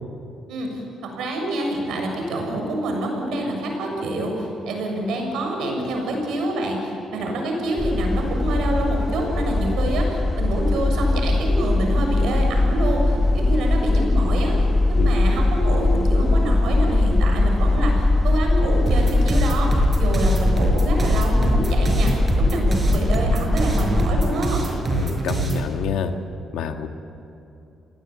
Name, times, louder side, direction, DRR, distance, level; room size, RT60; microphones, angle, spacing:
voice 1, 0.5-14.5 14.9-24.6, right 1 dB, 80° right, 2 dB, 7.0 m, -26 dB
sound 1, 7.8-24.3, left 2 dB, 25° left, 1.5 m, -20 dB
sound 2, 18.9-25.7, right 3 dB, 35° right, 5.8 m, -25 dB
voice 2, 24.9-26.1 26.5-26.9, left 8 dB, 85° left, 6 dB, 1.7 m, -27 dB
28.0 x 19.5 x 8.7 m, 2.8 s
cardioid pair, 90°, 0 cm